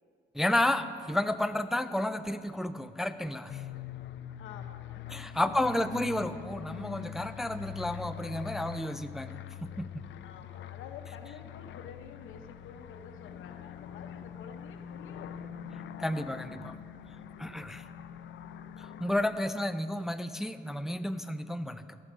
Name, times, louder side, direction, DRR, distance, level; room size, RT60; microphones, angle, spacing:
voice 1, 0.3-3.7 5.1-10.0 16.0-16.7 17.4-17.9 18.8-22.0, left 1 dB, ahead, 11 dB, 0.3 m, -32 dB
sound 1, 3.5-19.5, left 10 dB, 70° left, 0.5 m, -44 dB
voice 2, 4.3-5.1 5.4-5.5 5.9-6.0 10.2-15.5, left 6 dB, 85° left, 6 dB, 0.9 m, -49 dB
14.5 x 6.5 x 5.0 m, 2.5 s
cardioid pair, 90°, 20 cm